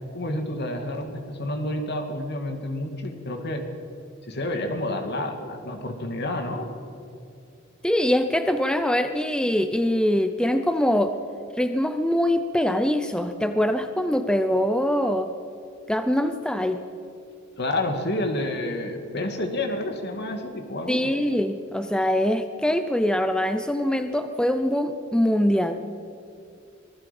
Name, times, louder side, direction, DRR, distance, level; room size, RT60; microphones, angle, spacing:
voice 1, 0.1-3.6 4.2-6.7 17.6-21.1, left 1 dB, 55° left, 5 dB, 2.5 m, -29 dB
voice 2, 7.8-11.1 11.6-15.3 15.9-16.8 20.9-25.8, left 1 dB, 5° left, 8 dB, 0.6 m, -23 dB
25.5 x 20.0 x 5.4 m, 2.6 s
head